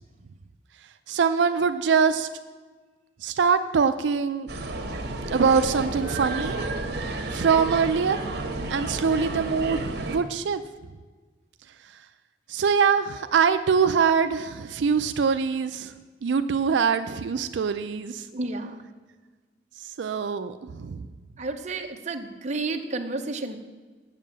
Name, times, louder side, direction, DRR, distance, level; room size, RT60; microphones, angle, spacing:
voice 1, 1.1-2.3 3.2-4.5 5.3-6.6 7.3-8.2 8.7-10.6 12.5-15.9 16.2-18.3 19.8-21.0, right 6 dB, 85° right, 10 dB, 0.4 m, -23 dB
sound 1, 4.5-10.2, right 2 dB, 65° right, 1.1 m, -31 dB
voice 2, 18.3-18.8 21.4-23.6, right 3 dB, 40° right, 5 dB, 0.8 m, -31 dB
7.5 x 7.4 x 7.4 m, 1.4 s
head